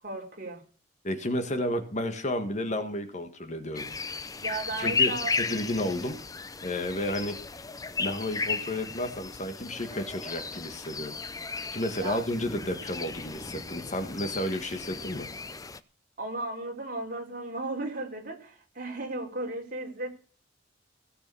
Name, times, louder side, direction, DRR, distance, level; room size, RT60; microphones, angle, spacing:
voice 1, 0.0-0.6 4.4-5.3 12.0-12.2 16.2-20.1, right 2 dB, 50° right, 2 dB, 3.6 m, -35 dB
voice 2, 1.0-3.9 4.8-5.1 5.4-6.2 6.6-7.4 8.0-11.1 11.7-15.3, left 1 dB, 40° left, 8 dB, 1.7 m, -32 dB
sound 1, 3.7-15.8, left 5 dB, 20° left, 0.6 m, -34 dB
17.0 x 6.9 x 7.0 m, 0.40 s
head